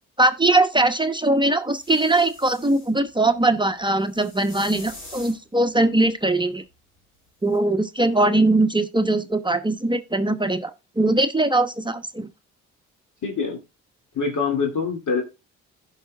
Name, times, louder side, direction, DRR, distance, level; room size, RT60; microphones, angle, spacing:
voice 1, 0.2-6.6 7.4-12.3, right 2 dB, 15° right, 0.9 m, -21 dB
sound 1, 1.7-2.9 4.0-5.4 7.5-7.6, left 2 dB, 85° left, 4.3 m, -43 dB
voice 2, 13.2-13.6 14.1-15.2, left 5 dB, 55° left, 2.5 m, -24 dB
15.5 x 5.7 x 2.3 m
hypercardioid pair, 50°, 36 cm